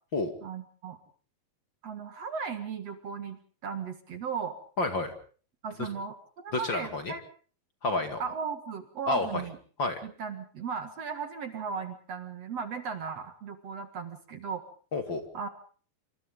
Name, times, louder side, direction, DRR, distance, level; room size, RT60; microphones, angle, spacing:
voice 1, 0.4-1.0 1.8-4.6 5.6-7.2 8.2-9.6 10.0-14.6 15.3-15.5, right 6 dB, 55° right, 8 dB, 2.5 m, -36 dB
voice 2, 4.8-5.1 5.8-5.9 6.5-7.1 7.8-8.2 9.1-9.4 9.8-10.0 14.9-15.2, left 2 dB, 35° left, 6 dB, 2.6 m, -29 dB
27.0 x 26.5 x 3.8 m, 0.43 s
omnidirectional pair, 4.1 m